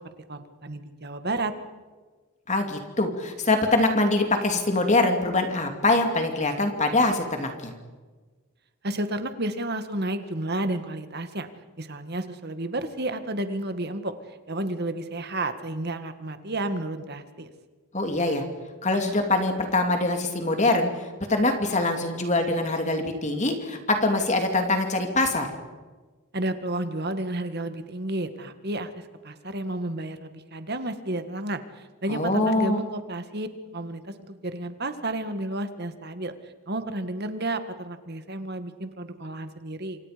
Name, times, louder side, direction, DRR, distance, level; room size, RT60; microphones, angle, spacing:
voice 1, 0.3-1.5 8.8-11.5 11.8-14.1 14.5-17.5 26.3-33.5 33.7-36.3 36.7-40.0, right 1 dB, 45° right, 9 dB, 1.9 m, -31 dB
voice 2, 2.5-7.7 17.9-18.4 18.8-20.9 21.3-25.5 32.1-32.8, left 2 dB, 30° left, 4 dB, 2.8 m, -24 dB
28.5 x 25.5 x 5.2 m, 1.3 s
head